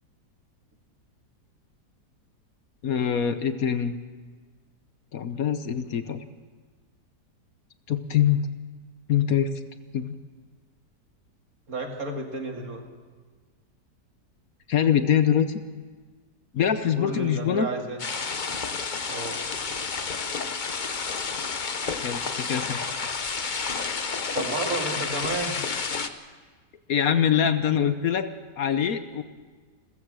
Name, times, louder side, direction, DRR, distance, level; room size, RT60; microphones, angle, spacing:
voice 1, 2.8-4.0 5.1-6.2 7.9-8.4 9.1-9.5 9.9-10.1 14.7-15.6 16.5-17.7 22.0-22.8 26.9-28.3 28.6-29.2, left 8 dB, 60° left, 10 dB, 1.2 m, -24 dB
voice 2, 11.7-12.8 17.0-18.0 19.1-19.4 24.3-25.6, right 2 dB, 55° right, 3 dB, 2.6 m, -31 dB
sound 1, 18.0-26.1, left 5 dB, 35° left, 0.9 m, -30 dB
29.0 x 15.0 x 6.3 m, 1.5 s
omnidirectional pair, 1.8 m